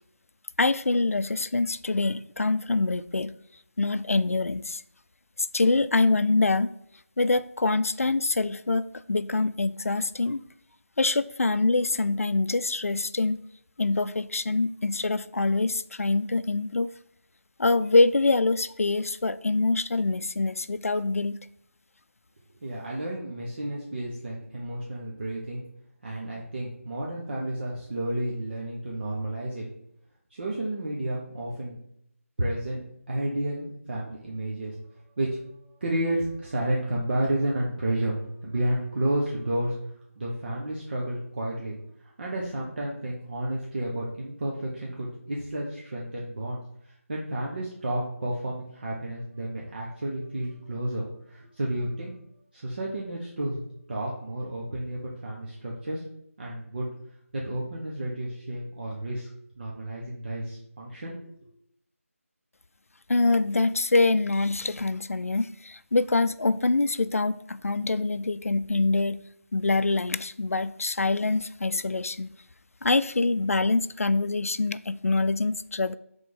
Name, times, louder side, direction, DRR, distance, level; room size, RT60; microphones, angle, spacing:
voice 1, 0.6-3.4 3.8-4.8 5.5-6.7 7.2-10.4 11.0-13.4 13.8-16.9 17.6-21.4 63.1-69.2 69.5-72.3 72.8-75.9, left 3 dB, 70° left, 14 dB, 0.4 m, -25 dB
voice 2, 22.6-25.6 26.0-29.7 30.3-31.8 32.4-32.8 33.1-39.8 40.1-41.8 42.0-52.2 52.5-56.0 56.4-56.9 57.3-59.3 59.6-61.4, right 1 dB, 40° right, -4 dB, 1.3 m, -31 dB
5.9 x 3.8 x 5.5 m, 0.74 s
figure-of-eight pair, 165°, 8 cm